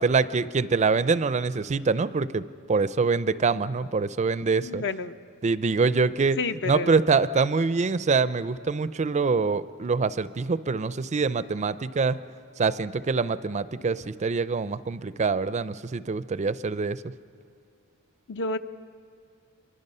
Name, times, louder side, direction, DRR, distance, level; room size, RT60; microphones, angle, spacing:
voice 1, 0.0-4.8 5.4-6.4 6.6-12.2 12.6-17.0, right 4 dB, 30° right, 15 dB, 0.4 m, -25 dB
voice 2, 4.6-5.2 6.4-6.9 18.3-18.6, left 3 dB, 55° left, 10 dB, 0.8 m, -30 dB
27.0 x 23.0 x 5.5 m, 2.4 s
head